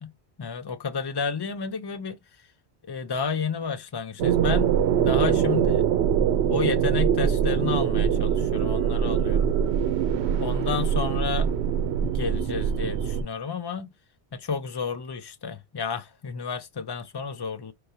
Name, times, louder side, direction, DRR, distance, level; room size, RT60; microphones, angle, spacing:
voice 1, 0.4-2.2 2.9-5.8 6.5-9.5 10.4-11.5 12.0-13.9 14.3-17.7, left 5 dB, 40° left, 0.3 m, -31 dB
sound 1, 4.2-13.2, right 8 dB, 85° right, 0.9 m, -23 dB
4.6 x 3.2 x 2.6 m
omnidirectional pair, 1.1 m